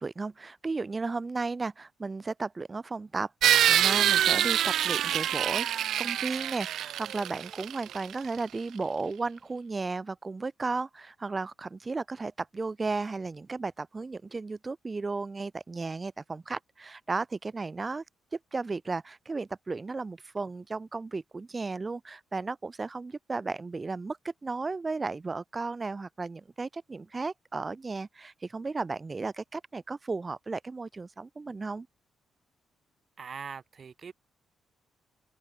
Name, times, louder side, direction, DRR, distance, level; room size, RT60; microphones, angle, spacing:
voice 1, 0.0-5.7 6.0-18.0 18.3-31.9, right 3 dB, 30° right, 0.7 m, -34 dB
Angle grinder tool, 3.4-8.1, right 11 dB, 75° right, 0.3 m, -25 dB
voice 2, 33.2-34.1, right 6 dB, 50° right, 1.5 m, -41 dB
open air
supercardioid pair, 70°, 0 cm